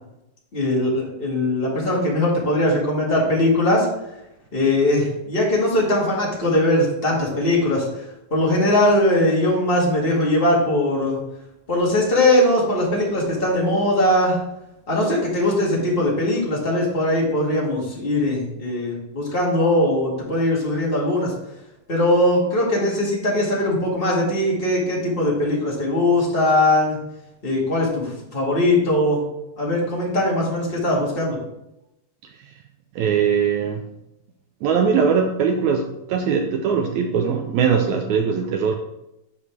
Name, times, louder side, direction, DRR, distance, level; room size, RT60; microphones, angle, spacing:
voice 1, 0.5-3.9 4.5-11.2 11.7-14.4 14.9-21.3 21.9-27.0 27.4-29.2 29.6-31.4, left 1 dB, 25° left, -4 dB, 1.4 m, -20 dB
voice 2, 32.9-33.8 34.6-38.8, right 6 dB, 90° right, 4 dB, 1.6 m, -21 dB
9.7 x 5.3 x 3.4 m, 0.87 s
omnidirectional pair, 4.0 m